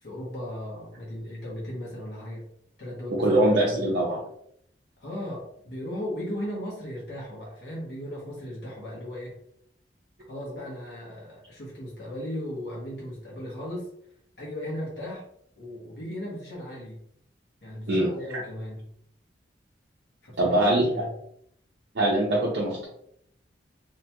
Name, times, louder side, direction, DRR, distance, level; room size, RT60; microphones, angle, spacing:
voice 1, 0.0-2.5 2.8-3.9 5.0-9.4 10.3-13.9 14.4-15.2 15.6-17.0 17.6-18.9 20.2-21.1, equal, 75° left, -5 dB, 1.0 m, -36 dB
voice 2, 3.1-4.2 17.9-18.1 20.4-21.0 21.9-22.9, right 1 dB, 75° right, -5 dB, 0.6 m, -23 dB
2.8 x 2.3 x 2.8 m, 0.71 s
head